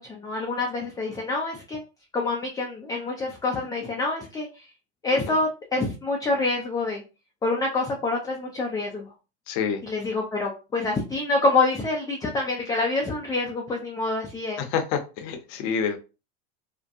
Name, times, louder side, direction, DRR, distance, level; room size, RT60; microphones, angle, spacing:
voice 1, 0.0-1.8 2.1-4.7 5.0-7.0 7.4-9.1 9.8-14.6, left 3 dB, 10° left, 0.4 m, -26 dB
voice 2, 9.5-9.8 14.6-16.0, left 7 dB, 55° left, 0.7 m, -27 dB
2.6 x 2.1 x 2.4 m
hypercardioid pair, 100°, 32 cm